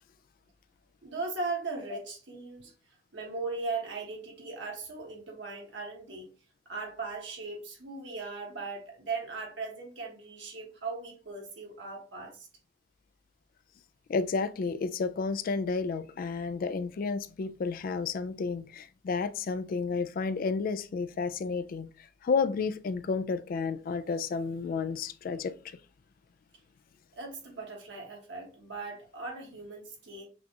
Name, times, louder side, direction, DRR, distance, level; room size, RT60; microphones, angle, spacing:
voice 1, 1.0-2.7 3.1-6.3 6.6-12.5 27.1-30.3, right 3 dB, 65° right, 1.4 m, -38 dB
voice 2, 14.1-25.8, left 4 dB, 50° left, 0.3 m, -31 dB
6.0 x 2.3 x 2.8 m
head